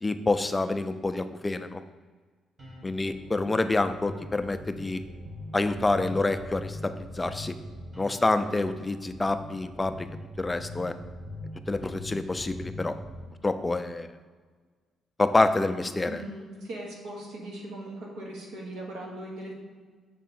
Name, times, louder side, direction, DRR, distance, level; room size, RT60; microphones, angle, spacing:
voice 1, 0.0-1.8 2.8-5.0 5.5-7.5 8.0-10.1 10.4-10.9 11.7-13.0 13.4-14.1 15.2-16.2, left 2 dB, 20° left, 9 dB, 0.4 m, -27 dB
sound 1, 2.6-13.3, left 1 dB, 40° right, 1.3 m, -42 dB
voice 2, 16.1-19.5, right 1 dB, 90° right, -3 dB, 1.4 m, -39 dB
6.4 x 3.6 x 4.2 m, 1.5 s
cardioid pair, 90°, 0 cm